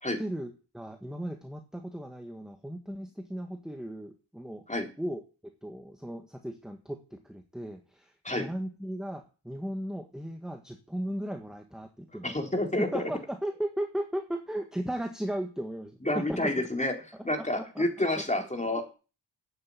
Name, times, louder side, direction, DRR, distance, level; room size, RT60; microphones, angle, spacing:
voice 1, 0.2-4.6 5.0-5.2 5.6-12.4 12.9-16.5 17.5-17.9, right 1 dB, ahead, 5 dB, 1.7 m, -36 dB
voice 2, 12.2-13.1 16.0-16.9 17.2-18.8, left 1 dB, 15° left, 3 dB, 3.6 m, -29 dB
8.7 x 8.2 x 8.4 m, 0.34 s
cardioid pair, 55°, 45 cm